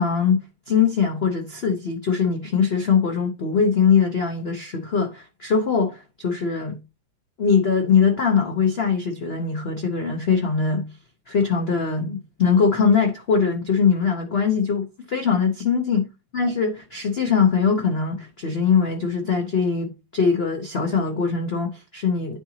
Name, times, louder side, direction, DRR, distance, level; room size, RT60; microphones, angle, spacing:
voice 1, 0.0-6.8 7.4-10.9 11.3-16.1 16.3-22.4, left 6 dB, 90° left, 0.5 m, -21 dB
9.9 x 3.8 x 2.8 m
omnidirectional pair, 2.2 m